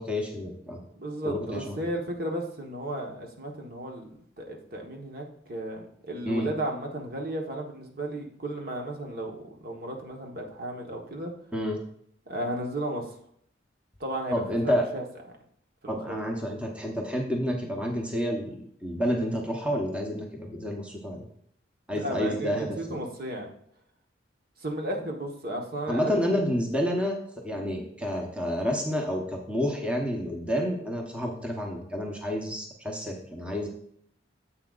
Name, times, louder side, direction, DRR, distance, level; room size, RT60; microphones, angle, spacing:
voice 1, 0.0-0.8 1.2-1.8 6.2-6.5 11.5-11.8 14.3-14.8 15.9-21.3 21.9-23.0 25.9-33.7, equal, 5° right, 0 dB, 1.0 m, -29 dB
voice 2, 0.9-11.3 12.3-13.1 14.0-15.0 15.8-16.2 21.9-23.5 24.6-26.2 27.5-27.7, right 1 dB, 50° right, 1 dB, 1.3 m, -34 dB
9.9 x 7.8 x 2.5 m, 0.67 s
head